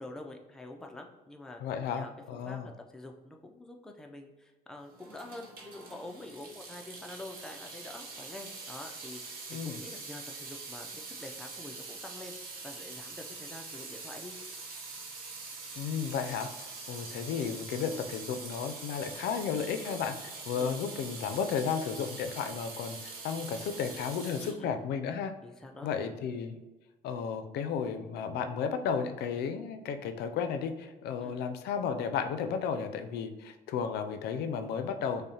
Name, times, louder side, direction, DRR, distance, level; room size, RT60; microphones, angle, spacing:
voice 1, 0.0-1.6 1.9-2.1 2.4-12.4 12.6-14.4 20.5-20.8 24.4-24.8 25.4-25.9 31.2-31.4, left 2 dB, 5° left, 2 dB, 0.3 m, -46 dB
voice 2, 1.6-2.7 9.5-9.8 15.8-25.3 25.8-26.6 27.0-35.2, left 6 dB, 75° left, 8 dB, 0.4 m, -33 dB
Water tap faucet / Sink (filling or washing) / Drip, 4.9-24.5, right 4 dB, 60° right, 0.8 m, -44 dB
5.3 x 2.1 x 2.8 m, 1.1 s
cardioid pair, 110°, 17 cm